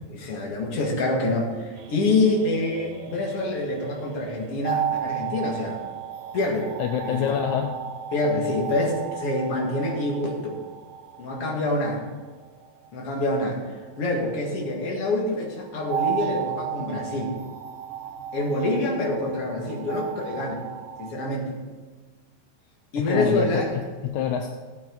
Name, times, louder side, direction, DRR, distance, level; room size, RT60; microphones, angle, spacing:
voice 1, 0.1-5.8 6.3-6.7 7.0-7.4 8.1-10.6 11.2-12.0 12.9-13.6 14.0-17.4 18.3-20.6 21.0-21.5 22.9-23.7, left 2 dB, 45° left, -1 dB, 2.7 m, -26 dB
sound 1, 1.8-15.1 15.9-21.1, right 8 dB, 80° right, 2.5 m, -35 dB
voice 2, 6.8-7.8 23.0-24.5, left 8 dB, 75° left, 3 dB, 1.8 m, -26 dB
17.5 x 8.8 x 4.0 m, 1.4 s
omnidirectional pair, 4.0 m